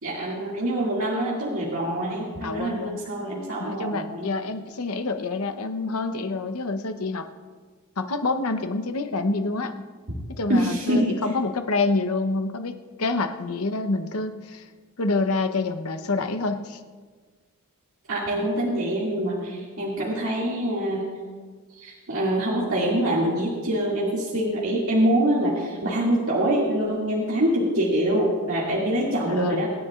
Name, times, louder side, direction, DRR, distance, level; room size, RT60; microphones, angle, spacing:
voice 1, 0.0-4.3 10.5-11.2 18.1-21.1 21.8-29.7, right 1 dB, 70° right, -6 dB, 2.2 m, -25 dB
voice 2, 2.4-3.0 3.6-7.3 8.0-9.9 10.4-14.7 15.0-16.8 29.3-29.6, left 3 dB, 85° left, 8 dB, 0.9 m, -27 dB
25.0 x 10.0 x 2.4 m, 1.5 s
head